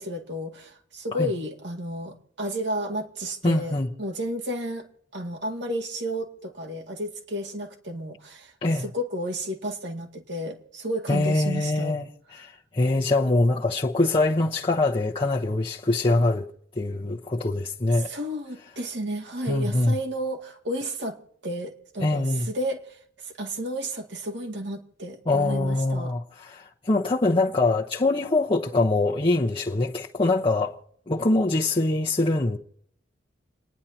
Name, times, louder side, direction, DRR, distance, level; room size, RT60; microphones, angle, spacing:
voice 1, 0.0-4.9 5.1-8.5 8.8-12.0 18.0-21.2 21.4-26.1, equal, 70° right, 2.2 m, -32 dB
voice 2, 3.4-3.9 8.6-8.9 11.1-16.5 16.7-18.1 19.4-20.0 22.0-22.5 25.3-30.8 31.1-32.6, left 2 dB, 30° left, 0.9 m, -24 dB
30.0 x 10.5 x 2.8 m
head